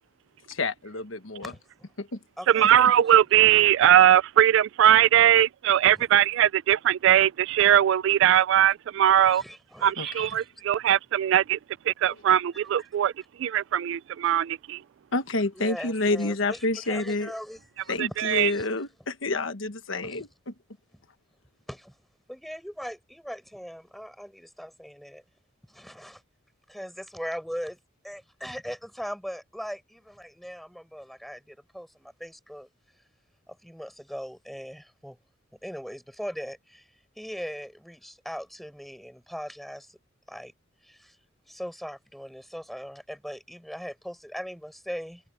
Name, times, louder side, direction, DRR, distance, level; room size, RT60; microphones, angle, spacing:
voice 1, 0.5-1.5 2.0-2.2 10.0-10.1 15.1-17.3 17.9-20.3, left 2 dB, 70° left, 1.3 m, -28 dB
voice 2, 1.4-1.9 2.4-2.9 5.9-6.1 9.3-10.4 12.5-12.6 15.5-16.6 16.9-18.7 20.0-20.3 21.7-21.9 22.3-25.2 25.7-26.2 26.7-27.8 28.0-32.7 33.5-35.2 35.5-36.9 37.2-40.0 40.3-40.5 40.8-41.2 41.5-45.2, equal, ahead, 7.7 m, -39 dB
voice 3, 2.5-9.4 9.8-11.6 11.9-13.1 13.4-14.8 18.0-18.5, right 11 dB, 65° right, 0.3 m, -20 dB
head